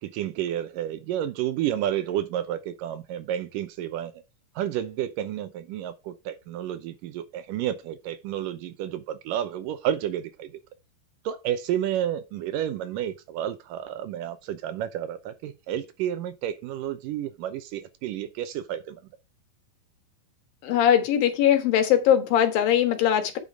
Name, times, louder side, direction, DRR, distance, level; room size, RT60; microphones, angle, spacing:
voice 1, 0.0-4.2 4.6-10.5 11.3-19.0, right 11 dB, 75° right, 2.3 m, -31 dB
voice 2, 20.6-23.4, left 10 dB, 75° left, 3.1 m, -21 dB
8.9 x 5.5 x 4.7 m
omnidirectional pair, 4.1 m